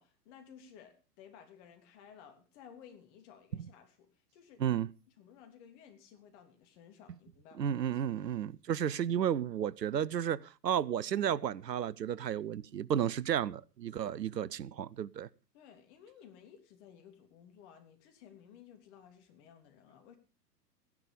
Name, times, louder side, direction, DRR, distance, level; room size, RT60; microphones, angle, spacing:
voice 1, 0.0-4.8 5.2-7.7 15.5-20.2, left 8 dB, 45° left, 3.3 m, -56 dB
voice 2, 7.6-15.3, right 9 dB, 80° right, 0.7 m, -33 dB
16.0 x 11.0 x 5.2 m
figure-of-eight pair, 105°, 49 cm